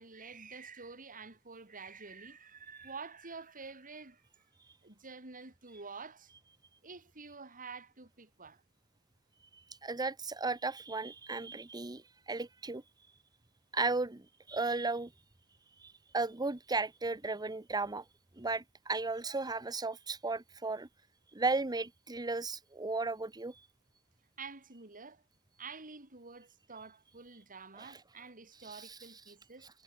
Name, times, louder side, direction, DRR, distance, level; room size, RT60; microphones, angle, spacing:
voice 1, 0.0-4.3 4.8-6.3 6.8-8.6 24.4-25.2 25.6-29.7, right 4 dB, 40° right, 3.9 m, -48 dB
voice 2, 9.5-12.8 13.7-15.1 15.8-18.0 18.4-20.9 21.3-23.6 27.8-28.0 28.6-29.0, right 3 dB, 20° right, 1.0 m, -35 dB
head